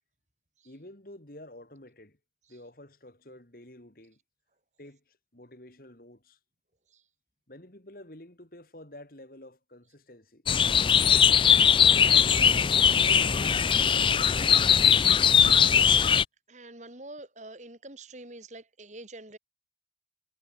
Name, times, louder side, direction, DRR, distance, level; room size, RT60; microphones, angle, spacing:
voice 1, 0.6-2.2 2.5-4.2 4.8-6.4 7.5-10.4 11.6-15.3, left 1 dB, 50° left, 2.9 m, -50 dB
sound 1, 10.5-16.2, left 8 dB, 30° left, 0.4 m, -20 dB
voice 2, 16.5-19.4, right 2 dB, 40° right, 3.7 m, -46 dB
head